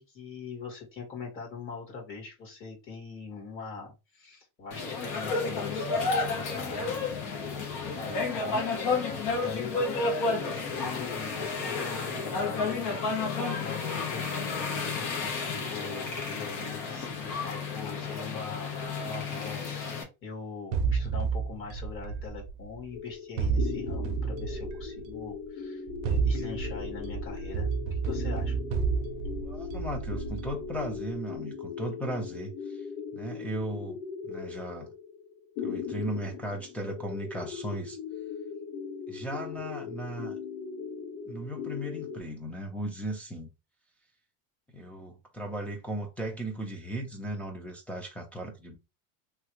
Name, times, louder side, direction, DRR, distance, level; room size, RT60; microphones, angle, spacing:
voice 1, 0.0-7.2 7.8-8.6 9.3-13.0 13.6-28.6, left 4 dB, 30° left, 1.7 m, -42 dB
sound 1, 4.7-20.0, left 4 dB, 45° left, 1.1 m, -31 dB
sound 2, 20.7-22.8 23.4-25.2 25.9-30.9, right 5 dB, 65° right, 0.6 m, -31 dB
sound 3, 22.9-42.2, left 6 dB, 70° left, 0.8 m, -39 dB
voice 2, 29.4-32.9 33.1-34.0 34.2-34.9 35.6-38.0 39.1-40.4 41.3-43.5 44.7-48.8, right 1 dB, 5° left, 0.5 m, -36 dB
3.1 x 2.3 x 3.0 m
supercardioid pair, 135°, 42 cm